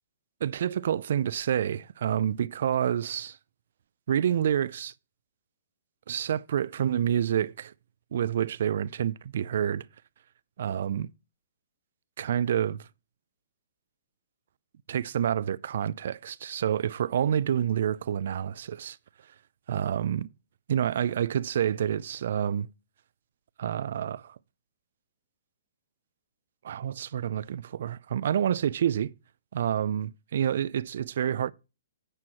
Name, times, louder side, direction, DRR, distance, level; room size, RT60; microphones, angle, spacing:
voice 1, 0.4-3.4 4.1-4.9 6.1-7.7 8.1-9.9 10.6-11.1 12.2-12.9 14.9-19.0 19.7-20.3 20.7-22.7 23.6-24.4 26.6-29.1 29.5-31.5, right 9 dB, 65° right, 0.4 m, -28 dB
9.7 x 4.5 x 4.5 m
hypercardioid pair, 135°, 0 cm